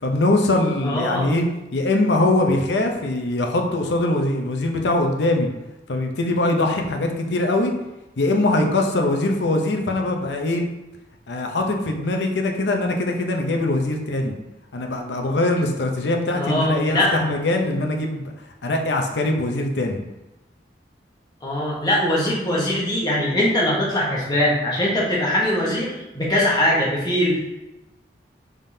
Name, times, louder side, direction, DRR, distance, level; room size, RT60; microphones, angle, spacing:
voice 1, 0.0-1.4 1.7-5.5 5.9-7.7 8.2-10.7 11.3-14.3 14.7-18.3 18.6-20.0, left 2 dB, 85° left, 3 dB, 0.7 m, -22 dB
voice 2, 0.8-1.3 16.3-17.1 21.4-27.4, left 1 dB, 25° left, -5 dB, 1.1 m, -21 dB
5.2 x 3.7 x 2.7 m, 0.97 s
head